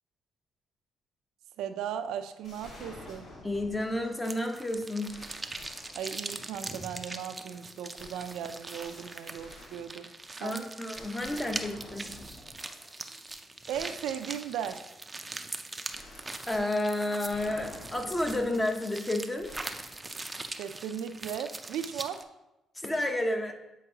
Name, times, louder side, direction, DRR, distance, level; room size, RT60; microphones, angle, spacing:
voice 1, 1.6-3.3 6.0-10.1 10.4-10.6 13.7-14.8 20.5-22.2, right 9 dB, 90° right, 9 dB, 0.4 m, -37 dB
sound 1, 2.4-4.3 4.7-4.8 5.1-6.7 8.0-10.4 10.9-12.9 13.3-13.4 13.7-14.7 15.9-19.0 19.4-20.7, left 1 dB, 65° left, 2.0 m, -50 dB
voice 2, 3.4-5.2 10.4-12.1 15.8-15.9 16.5-19.5 22.7-23.5, left 1 dB, 15° left, 4 dB, 0.9 m, -31 dB
sound 2, 4.2-22.2, right 2 dB, 20° right, 0.5 m, -42 dB
8.3 x 4.5 x 2.8 m, 0.92 s
cardioid pair, 90°, 0 cm